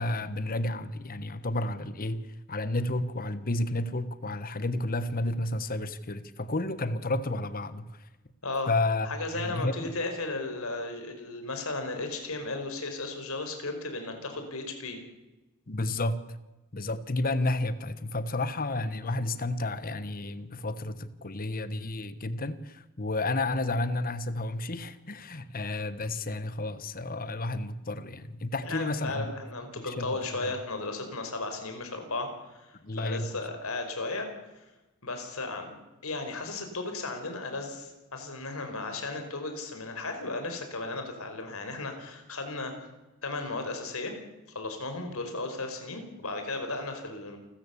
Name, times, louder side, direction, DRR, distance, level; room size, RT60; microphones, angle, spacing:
voice 1, 0.0-2.2 2.5-7.9 8.7-9.1 9.3-9.9 15.7-16.2 16.7-29.3 29.8-30.1 30.4-30.5 32.8-33.3, left 2 dB, 40° left, 14 dB, 1.3 m, -31 dB
voice 2, 9.0-15.0 28.6-34.3 35.0-35.8 36.0-42.7 43.2-44.1 44.5-47.4, left 2 dB, 70° left, 6 dB, 4.9 m, -35 dB
28.5 x 14.0 x 8.5 m, 1.1 s
head